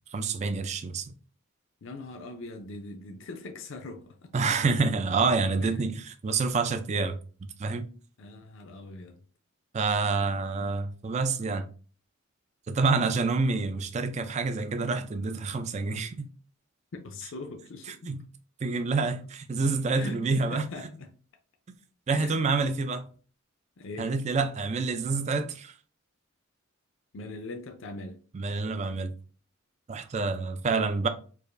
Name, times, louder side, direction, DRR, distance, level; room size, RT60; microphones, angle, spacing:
voice 1, 0.1-1.1 4.3-7.2 7.6-7.9 9.7-11.7 12.7-16.3 17.9-18.3 18.6-20.7 22.1-23.1 24.0-25.7 28.3-29.1 29.9-31.1, right 4 dB, 35° right, 0.4 m, -27 dB
voice 2, 1.8-4.4 5.6-5.8 8.2-9.2 16.9-18.1 19.9-21.1 22.1-22.4 23.8-24.1 27.1-28.2, left 2 dB, 65° left, 0.5 m, -41 dB
4.7 x 2.5 x 2.5 m
head